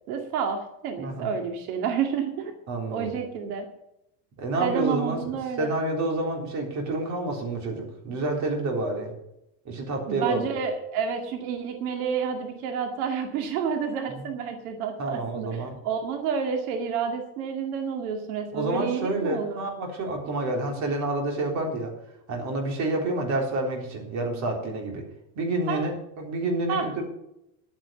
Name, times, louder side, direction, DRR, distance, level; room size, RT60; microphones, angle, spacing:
voice 1, 0.1-2.5 2.9-3.7 4.6-5.7 10.1-19.6 25.7-25.9 26.7-26.9, right 6 dB, 85° right, 4 dB, 2.2 m, -29 dB
voice 2, 1.0-1.3 2.7-3.1 4.4-9.1 9.7-10.5 14.1-14.3 15.0-15.7 18.5-21.9 22.3-25.1 25.4-25.9 26.2-27.0, right 2 dB, 40° right, 1 dB, 3.8 m, -28 dB
11.0 x 9.2 x 6.9 m, 0.84 s
cardioid pair, 170°, 43 cm